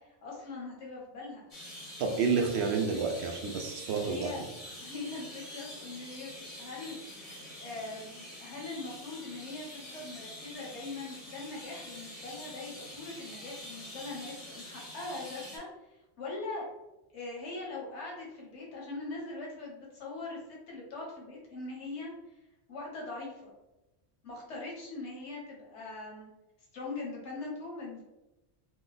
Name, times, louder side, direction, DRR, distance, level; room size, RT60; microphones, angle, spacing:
voice 1, 0.0-1.5 4.0-4.4 4.8-16.7 17.1-22.4 22.7-23.5 24.2-26.3 26.7-28.0, left 3 dB, 85° left, -3 dB, 1.2 m, -41 dB
sound 1, 1.5-15.6, left 1 dB, 35° left, 0.9 m, -46 dB
voice 2, 2.0-4.3, right 5 dB, 75° right, 3 dB, 0.8 m, -29 dB
2.9 x 2.1 x 3.8 m, 0.99 s
omnidirectional pair, 1.1 m